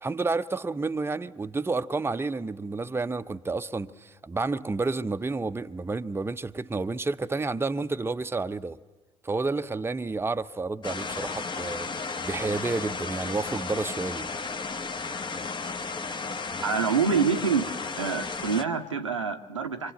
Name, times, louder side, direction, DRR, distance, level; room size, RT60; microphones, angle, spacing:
voice 1, 0.0-8.8 9.2-14.3, right 3 dB, 15° right, 0.8 m, -30 dB
sound 1, 10.8-18.6, left 4 dB, 30° left, 1.4 m, -34 dB
voice 2, 16.6-17.7 18.0-19.9, right 6 dB, 90° right, 0.9 m, -26 dB
26.5 x 24.5 x 8.0 m
figure-of-eight pair, 50°, 15 cm